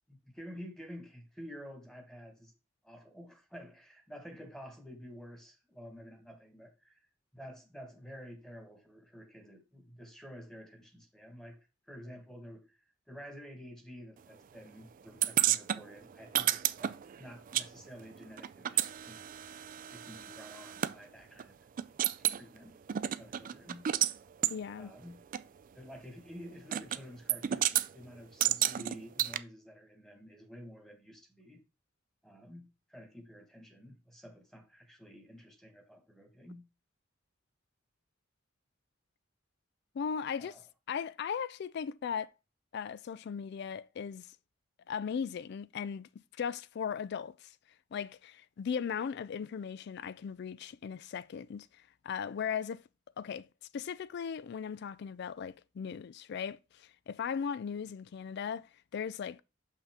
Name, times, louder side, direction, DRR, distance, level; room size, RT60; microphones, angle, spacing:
voice 1, 0.1-2.5 2.8-7.0 7.3-12.8 13.1-19.2 19.8-21.6 22.2-22.8 23.2-23.9 24.8-25.2 25.7-31.6 32.2-36.7 40.4-40.6, equal, ahead, 1.3 m, -50 dB
sound 1, 15.2-17.7 17.9-20.9 21.4-21.5 21.8-22.4 22.9-24.1 24.4-24.6 25.3-25.4 26.7-27.0 27.3-27.9 28.4-29.4, right 12 dB, 45° right, 0.3 m, -31 dB
voice 2, 24.5-24.9 39.9-40.5 40.9-42.3 42.7-44.3 44.9-46.1 46.4-47.5 47.9-52.8 53.2-53.5 53.7-59.4, left 7 dB, 60° left, 0.3 m, -38 dB
6.5 x 5.6 x 3.5 m
head